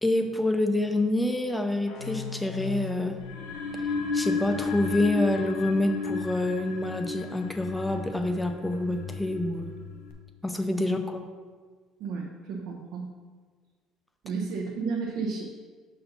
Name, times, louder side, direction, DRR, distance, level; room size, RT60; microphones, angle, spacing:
voice 1, 0.0-3.2 4.1-9.8 10.4-11.0, left 1 dB, 5° left, 5 dB, 0.6 m, -27 dB
sound 1, 1.9-5.3, left 8 dB, 70° left, 1.3 m, -40 dB
sound 2, 3.2-10.1, left 4 dB, 90° left, 0.7 m, -33 dB
voice 2, 12.0-13.1 14.2-15.4, right 5 dB, 70° right, -2 dB, 0.8 m, -32 dB
5.5 x 4.3 x 5.5 m, 1.5 s
cardioid pair, 130°, 0 cm